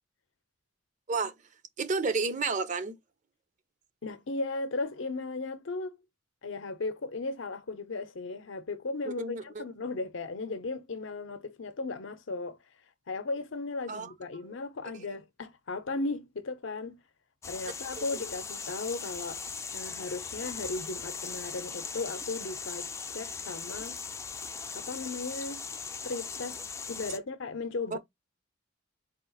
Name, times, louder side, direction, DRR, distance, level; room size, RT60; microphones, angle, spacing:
voice 1, 1.8-3.0 9.1-9.6 13.9-14.1 18.0-18.1 27.9-28.0, right 4 dB, 40° right, 0.5 m, -31 dB
voice 2, 4.0-6.0 6.4-12.6 13.1-17.0 17.4-19.4 19.7-24.0 24.7-25.7 26.0-26.6 26.9-28.0, left 3 dB, 80° left, 0.7 m, -36 dB
sound 1, 17.4-27.2, left 5 dB, 15° left, 0.3 m, -39 dB
4.3 x 2.3 x 4.0 m
head